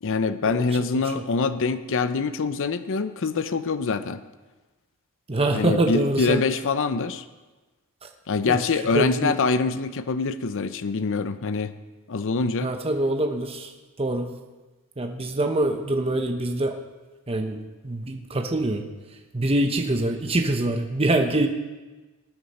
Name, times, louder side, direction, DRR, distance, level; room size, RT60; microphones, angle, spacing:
voice 1, 0.0-4.2 5.5-7.2 8.3-11.7 12.1-12.7, left 4 dB, 60° left, 12 dB, 0.6 m, -25 dB
voice 2, 5.3-6.4 8.5-8.6 8.9-9.3 12.6-13.7 14.0-14.3 15.0-16.7 17.3-17.6 17.8-18.8 19.3-21.5, right 1 dB, 25° right, 4 dB, 0.9 m, -24 dB
19.5 x 9.6 x 4.2 m, 1.2 s
head